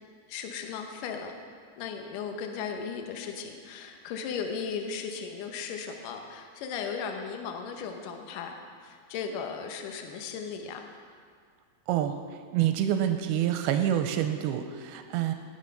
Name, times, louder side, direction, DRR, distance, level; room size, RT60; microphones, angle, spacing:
voice 1, 0.3-1.3 1.8-8.6 8.8-10.8, left 6 dB, 70° left, 3 dB, 2.3 m, -36 dB
voice 2, 11.9-12.2 12.5-15.3, right 11 dB, 90° right, 7 dB, 2.6 m, -27 dB
18.5 x 6.3 x 5.7 m, 2.1 s
omnidirectional pair, 4.5 m